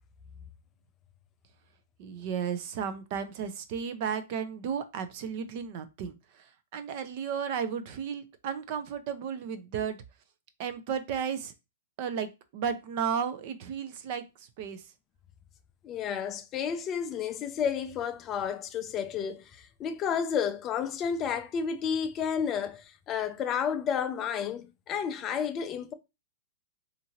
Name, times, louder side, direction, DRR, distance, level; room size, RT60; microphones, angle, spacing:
voice 1, 2.0-6.2 6.7-10.0 10.6-11.5 12.0-14.8, right 7 dB, 50° right, 0.5 m, -34 dB
voice 2, 15.8-25.9, left 7 dB, 30° left, 0.3 m, -31 dB
2.7 x 2.5 x 2.8 m
hypercardioid pair, 130°, 0 cm